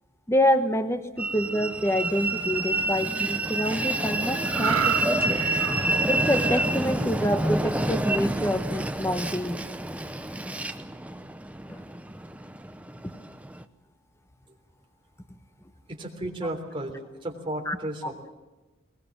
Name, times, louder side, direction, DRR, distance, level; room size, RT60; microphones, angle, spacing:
voice 1, 0.3-5.4 6.1-9.6 11.7-11.8 17.7-17.8 18.0-18.1, equal, 15° left, 8 dB, 1.0 m, -27 dB
Train, 1.2-13.6, right 2 dB, 5° right, 0.7 m, -28 dB
sound 1, 4.4-7.9 8.3-8.6, right 8 dB, 85° right, 0.6 m, -31 dB
voice 2, 15.9-18.3, right 1 dB, 25° right, 2 dB, 3.5 m, -34 dB
21.0 x 21.0 x 7.4 m, 1.1 s
head